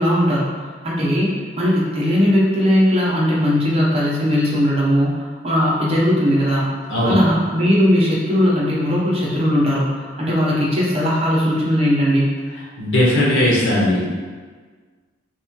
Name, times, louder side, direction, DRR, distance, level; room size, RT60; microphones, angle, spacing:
voice 1, 0.0-1.3 1.6-6.7 7.0-12.3, equal, 30° right, -5 dB, 0.9 m, -18 dB
voice 2, 12.8-14.0, left 1 dB, 85° left, -6 dB, 1.3 m, -17 dB
3.5 x 3.2 x 4.5 m, 1.5 s
head